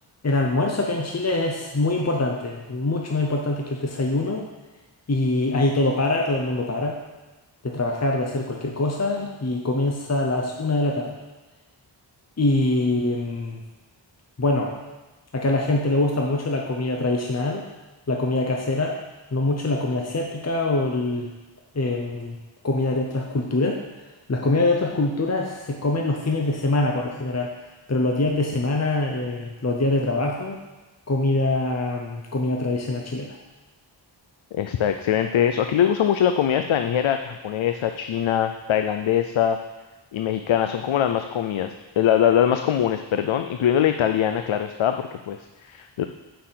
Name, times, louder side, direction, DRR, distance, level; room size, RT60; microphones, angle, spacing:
voice 1, 0.2-4.5 5.1-7.0 7.6-11.2 12.4-13.6 14.4-14.7 15.3-17.7 18.1-19.0 19.3-21.3 21.7-22.4 22.6-23.8 24.3-27.5 27.9-30.6 31.1-33.3, left 2 dB, 35° left, 0 dB, 0.8 m, -24 dB
voice 2, 34.5-39.6 40.1-46.0, left 9 dB, 80° left, 7 dB, 0.5 m, -22 dB
6.6 x 5.7 x 7.3 m, 1.1 s
wide cardioid pair, 80°, 46 cm